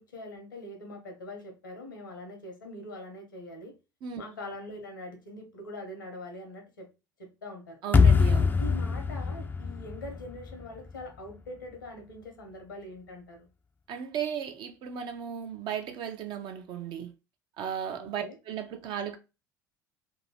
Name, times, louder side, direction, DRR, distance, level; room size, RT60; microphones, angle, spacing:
voice 1, 0.0-3.7 4.2-6.9 7.2-7.8 8.6-13.5 18.0-18.4, left 1 dB, 85° left, 0.9 m, -43 dB
voice 2, 7.8-8.6 13.9-17.1 17.6-19.2, right 8 dB, 50° right, 0.7 m, -35 dB
sound 1, 7.9-11.0, left 5 dB, 20° left, 0.4 m, -24 dB
2.9 x 2.6 x 2.9 m
figure-of-eight pair, 65°, 10 cm